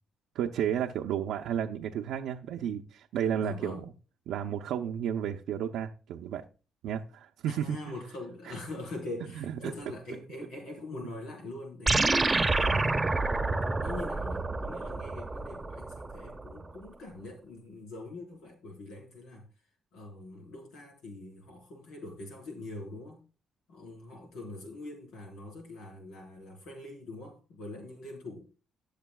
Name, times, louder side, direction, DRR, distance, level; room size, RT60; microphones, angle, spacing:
voice 1, 0.3-3.9 4.3-6.4 6.8-7.9 8.5-8.6 9.5-9.7, right 9 dB, 85° right, 2 dB, 0.6 m, -32 dB
voice 2, 3.4-3.8 7.5-12.2 12.5-13.1 13.8-19.4 19.9-23.2 23.7-28.4, left 2 dB, 85° left, 1 dB, 4.4 m, -43 dB
sound 1, 11.9-16.5, right 3 dB, 20° right, 1.1 m, -28 dB
19.0 x 6.7 x 2.3 m, 0.35 s
cardioid pair, 90°, 0 cm